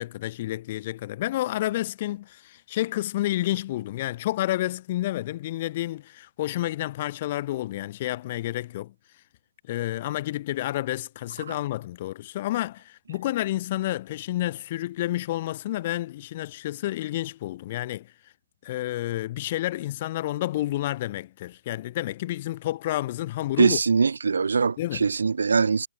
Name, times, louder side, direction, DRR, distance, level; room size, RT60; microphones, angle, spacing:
voice 1, 0.0-8.9 9.7-18.1 18.6-23.8 24.8-25.1, left 15 dB, 40° left, 1.8 m, -30 dB
voice 2, 23.6-24.8 25.0-25.9, right 5 dB, 70° right, 0.5 m, -21 dB
hypercardioid pair, 140°, 0 cm